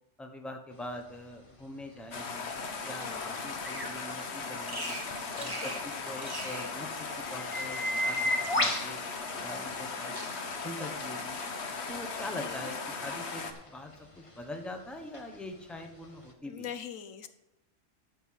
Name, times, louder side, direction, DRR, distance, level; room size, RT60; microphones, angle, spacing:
voice 1, 0.2-2.5 2.8-5.0 5.4-9.0 9.4-10.1 10.6-11.4 11.9-16.7, left 1 dB, ahead, 4 dB, 1.1 m, -43 dB
sound 1, 0.7-10.0 10.4-16.3, left 1 dB, 25° left, 1.2 m, -38 dB
sound 2, 2.1-13.5, left 4 dB, 60° left, 1.4 m, -38 dB
voice 2, 2.9-3.4 5.4-5.7 12.3-12.6 16.5-17.3, left 8 dB, 85° left, 10 dB, 1.3 m, -42 dB
Bird vocalization bird call bird song, 3.6-4.0 4.6-5.1 5.4-5.9 6.2-6.7 7.7-8.7 9.5-9.9 10.2-10.6 11.1-11.5, right 1 dB, 20° right, 1.6 m, -42 dB
13.5 x 5.5 x 5.9 m, 0.89 s
omnidirectional pair, 1.3 m